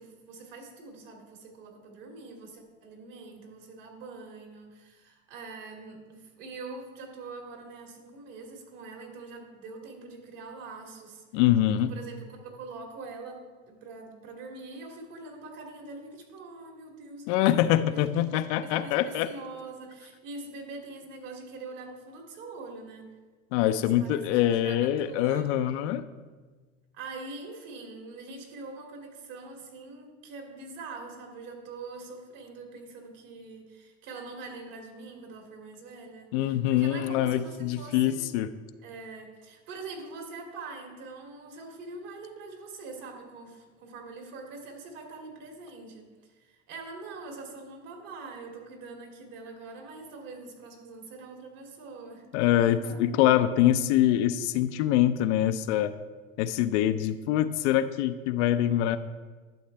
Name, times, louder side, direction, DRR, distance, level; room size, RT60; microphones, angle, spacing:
voice 1, 0.0-11.2 11.8-17.3 17.6-23.1 23.7-25.5 26.9-38.3 38.8-52.2 52.8-53.1, right 3 dB, 55° right, 1 dB, 2.5 m, -44 dB
voice 2, 11.3-11.9 17.3-19.3 23.5-26.0 36.3-38.5 52.3-55.9 56.4-59.0, left 12 dB, 60° left, 11 dB, 0.6 m, -24 dB
11.5 x 7.1 x 3.3 m, 1.4 s
supercardioid pair, 115°, 39 cm